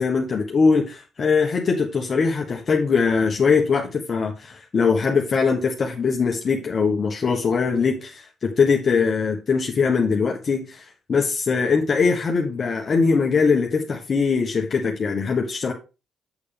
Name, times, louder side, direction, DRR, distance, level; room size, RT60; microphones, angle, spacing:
voice 1, 0.0-15.7, left 5 dB, 45° left, 1 dB, 1.2 m, -21 dB
7.1 x 6.6 x 3.4 m, 0.30 s
hypercardioid pair, 50°, 0 cm